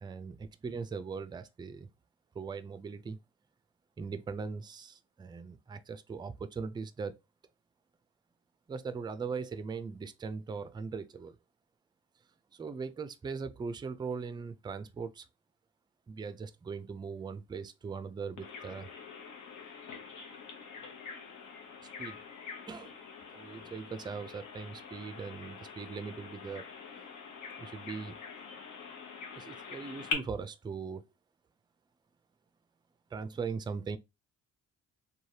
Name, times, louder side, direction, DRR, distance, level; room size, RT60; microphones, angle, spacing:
voice 1, 0.0-1.9 2.4-3.2 4.0-7.2 8.7-11.4 12.5-15.3 16.1-18.9 22.0-22.2 22.7-22.9 23.3-26.7 27.6-28.2 29.4-31.0 33.1-34.0, right 5 dB, 15° right, 0.3 m, -40 dB
Bird vocalization bird call bird song, 18.4-30.1, left 5 dB, 85° left, 0.9 m, -44 dB
3.1 x 2.3 x 2.7 m
cardioid pair, 90°, 30 cm